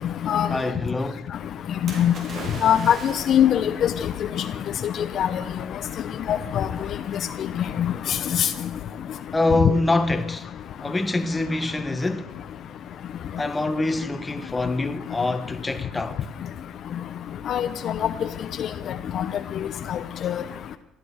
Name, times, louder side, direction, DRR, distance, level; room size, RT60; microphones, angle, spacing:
voice 1, 0.5-1.3 9.3-10.5 10.8-12.3 13.4-16.2, left 2 dB, 15° left, 1.3 m, -25 dB
voice 2, 1.8-2.1 2.6-4.1 4.4-4.5 4.8-5.4 6.3-6.7 7.8-8.5 17.5-18.1 18.6-18.7 19.1-19.2 19.6-20.4, left 10 dB, 55° left, 0.8 m, -22 dB
Splash splatter, 1.9-3.7 4.6-4.7, right 2 dB, 55° right, 4.6 m, -38 dB
15.0 x 12.0 x 6.5 m
supercardioid pair, 85°, 0 cm